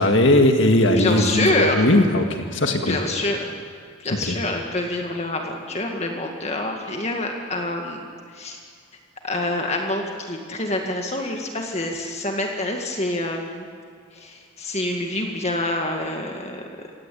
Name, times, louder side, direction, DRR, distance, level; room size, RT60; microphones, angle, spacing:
voice 1, 0.0-3.0 4.3-4.4, left 1 dB, 60° left, 5 dB, 1.9 m, -18 dB
voice 2, 1.0-1.8 2.9-3.5 4.0-8.0 8.3-8.6 9.2-13.6 14.1-16.6, left 2 dB, 30° left, 2 dB, 2.0 m, -26 dB
25.5 x 17.5 x 8.6 m, 2.2 s
head